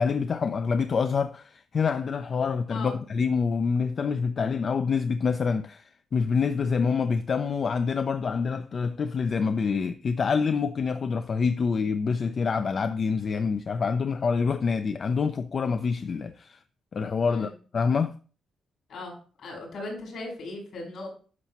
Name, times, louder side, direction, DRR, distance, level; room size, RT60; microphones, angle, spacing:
voice 1, 0.0-16.6 16.9-18.1, left 5 dB, 40° left, 0.4 m, -26 dB
voice 2, 18.9-21.1, left 2 dB, 65° left, 4.8 m, -38 dB
11.0 x 5.8 x 2.9 m
cardioid pair, 145°, 0 cm